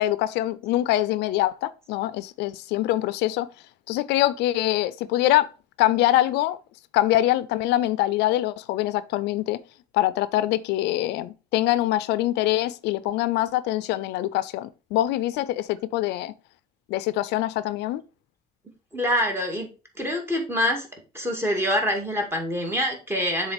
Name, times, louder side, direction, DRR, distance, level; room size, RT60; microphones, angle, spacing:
voice 1, 0.0-3.5 3.9-5.5 5.8-6.6 6.9-9.6 9.9-16.3 16.9-18.0, left 15 dB, 85° left, 0.5 m, -24 dB
voice 2, 18.9-19.7 20.0-20.9 21.1-23.5, equal, 15° right, 2.2 m, -25 dB
7.2 x 3.8 x 4.9 m
cardioid pair, 110°, 17 cm